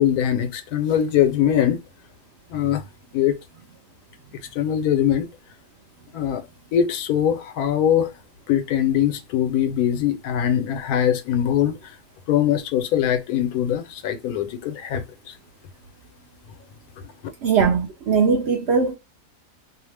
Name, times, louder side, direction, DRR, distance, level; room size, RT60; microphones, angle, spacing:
voice 1, 0.0-1.8 2.5-2.8 3.1-3.4 4.3-5.3 6.1-6.4 6.7-8.1 8.5-11.8 12.3-15.3, left 10 dB, 85° left, 1.1 m, -22 dB
voice 2, 17.4-18.9, right 5 dB, 70° right, 0.6 m, -20 dB
2.8 x 2.0 x 3.2 m
omnidirectional pair, 1.5 m